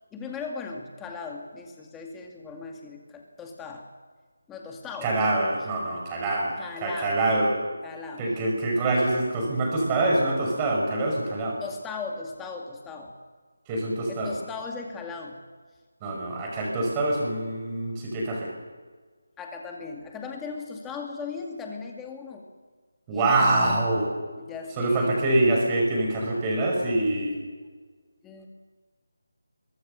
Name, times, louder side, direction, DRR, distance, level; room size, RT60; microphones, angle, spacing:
voice 1, 0.1-3.9 4.5-5.1 6.6-7.2 7.8-8.3 11.6-13.1 14.1-15.4 19.4-22.5 23.1-23.3 23.6-23.8 24.4-25.2 28.2-28.5, left 4 dB, 5° left, 1 dB, 2.2 m, -38 dB
voice 2, 5.0-6.5 6.8-7.6 8.2-11.6 13.7-14.3 16.0-18.5 23.1-24.1 24.8-27.4, right 2 dB, 15° right, -1 dB, 5.7 m, -25 dB
27.5 x 23.5 x 6.8 m, 1.4 s
figure-of-eight pair, 170°, 0 cm